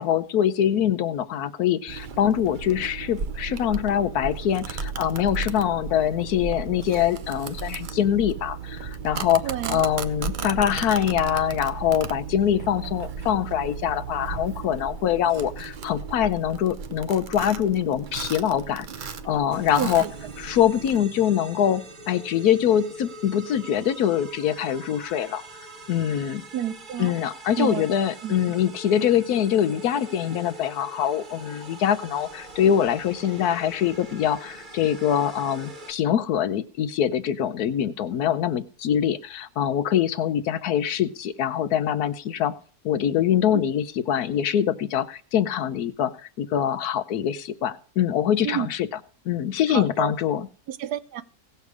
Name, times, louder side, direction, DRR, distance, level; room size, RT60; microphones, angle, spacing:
voice 1, 0.0-18.9 19.2-20.0 20.4-25.4 25.9-26.4 27.0-42.5 42.8-48.9 49.2-50.5, left 10 dB, 75° left, 1.2 m, -24 dB
Domestic sounds home sounds, 1.9-21.0, right 6 dB, 50° right, 0.6 m, -35 dB
voice 2, 9.4-9.8 19.8-20.1 26.5-27.1 27.6-27.9 28.2-28.3 48.4-48.7 49.7-50.1 50.7-51.2, right 11 dB, 85° right, 1.2 m, -29 dB
sound 1, 19.5-35.9, right 1 dB, 35° right, 1.4 m, -43 dB
17.5 x 6.8 x 4.8 m
omnidirectional pair, 1.6 m